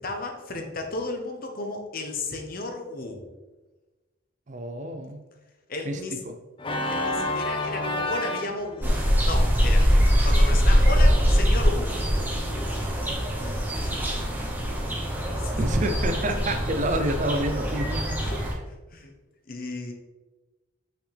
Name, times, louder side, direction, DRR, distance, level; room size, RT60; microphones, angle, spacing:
voice 1, 0.0-3.2 5.7-6.2 6.9-9.0 9.2-9.9 10.2-12.0 12.5-14.3 14.9-15.0 15.3-15.6 16.3-16.4 18.2-18.4 18.9-19.1 19.5-19.9, left 2 dB, 50° left, 4 dB, 0.9 m, -34 dB
voice 2, 4.5-5.2 5.8-6.0 6.3-6.4 15.6-18.5, right 1 dB, 40° right, 6 dB, 0.5 m, -28 dB
Organ, 6.6-11.4, left 2 dB, 25° left, 0.6 m, -32 dB
sound 1, 8.8-18.5, equal, 10° right, 0.9 m, -23 dB
5.9 x 5.8 x 3.3 m, 1.1 s
head